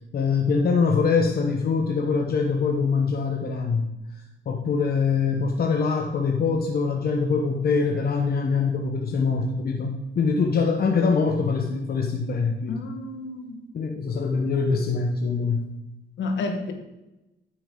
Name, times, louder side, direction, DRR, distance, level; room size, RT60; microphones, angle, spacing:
voice 1, 0.1-3.9 4.5-12.9 13.7-15.7, left 5 dB, 50° left, 1 dB, 1.0 m, -23 dB
voice 2, 12.7-13.6 16.2-16.7, left 3 dB, 70° left, 4 dB, 1.5 m, -30 dB
9.3 x 6.5 x 3.9 m, 0.98 s
cardioid pair, 90°, 20 cm